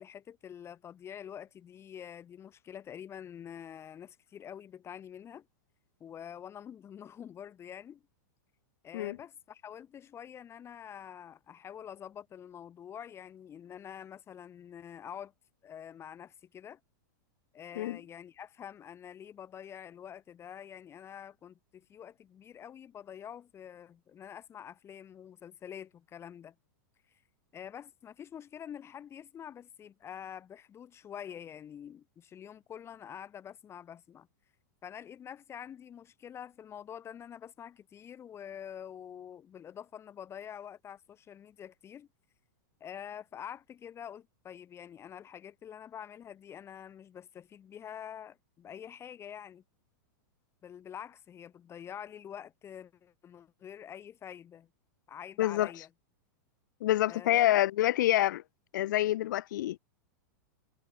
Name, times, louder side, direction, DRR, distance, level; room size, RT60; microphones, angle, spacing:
voice 1, 0.0-5.5 6.0-8.0 8.8-15.3 15.6-16.8 17.5-26.6 27.5-34.3 34.8-42.1 42.8-49.6 50.6-54.7 55.1-55.9 57.1-57.6, left 9 dB, 25° left, 3.7 m, -46 dB
voice 2, 55.4-55.7 56.8-58.4 58.7-59.8, left 14 dB, 70° left, 1.6 m, -27 dB
hypercardioid pair, 125°, 10 cm